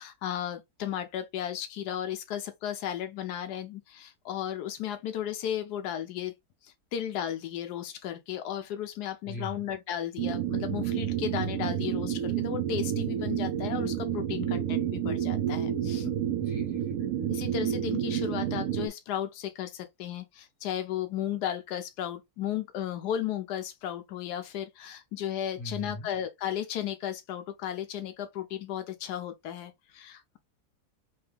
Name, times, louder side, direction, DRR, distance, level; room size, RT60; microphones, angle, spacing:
voice 1, 0.0-6.3 6.6-16.1 17.3-30.4, left 10 dB, 90° left, 1.2 m, -35 dB
voice 2, 9.2-9.6 16.4-17.0 25.6-26.1, left 1 dB, 35° left, 1.8 m, -40 dB
sound 1, 10.2-18.9, right 10 dB, 65° right, 0.9 m, -30 dB
3.5 x 2.9 x 3.4 m
omnidirectional pair, 1.7 m